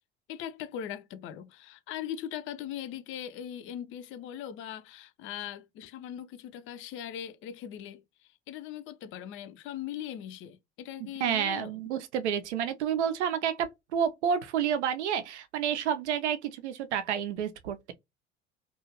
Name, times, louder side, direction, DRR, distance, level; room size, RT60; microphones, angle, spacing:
voice 1, 0.3-11.8, left 10 dB, 35° left, 0.4 m, -40 dB
voice 2, 11.0-17.9, right 8 dB, 75° right, 0.5 m, -30 dB
2.7 x 2.3 x 2.8 m
figure-of-eight pair, 65°, 34 cm